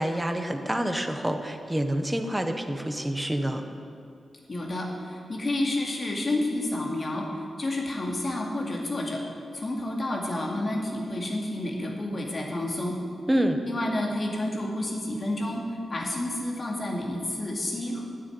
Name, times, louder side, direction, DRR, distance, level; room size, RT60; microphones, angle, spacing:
voice 1, 0.0-3.6 13.3-13.6, right 1 dB, 10° right, 6 dB, 0.9 m, -27 dB
voice 2, 4.5-9.2 9.5-13.0 13.7-15.6 15.9-18.0, left 1 dB, 35° left, 0 dB, 2.3 m, -30 dB
9.4 x 8.2 x 9.4 m, 2.5 s
wide cardioid pair, 120°, 0 cm